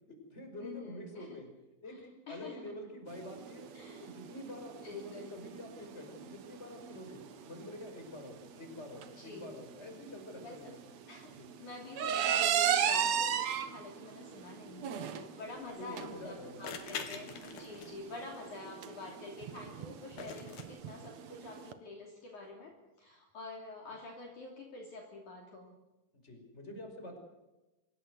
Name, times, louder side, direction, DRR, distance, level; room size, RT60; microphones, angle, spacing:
voice 1, 0.1-1.5 1.8-3.7 4.0-10.9 11.4-11.5 15.8-16.6 17.0-17.2 26.2-27.2, left 1 dB, 15° left, 4 dB, 5.5 m, -47 dB
voice 2, 0.6-1.3 1.9-2.0 2.3-2.6 3.7-4.1 4.8-5.3 9.1-9.5 10.4-10.6 11.1-11.3 11.6-25.7, left 3 dB, 50° left, 1 dB, 4.2 m, -47 dB
sound 1, 3.1-21.7, right 9 dB, 60° right, 1.9 m, -36 dB
sound 2, 15.5-15.6 16.6-18.1 20.2-20.6, left 6 dB, 70° left, 4.1 m, -43 dB
26.0 x 19.0 x 8.0 m, 1.0 s
omnidirectional pair, 4.7 m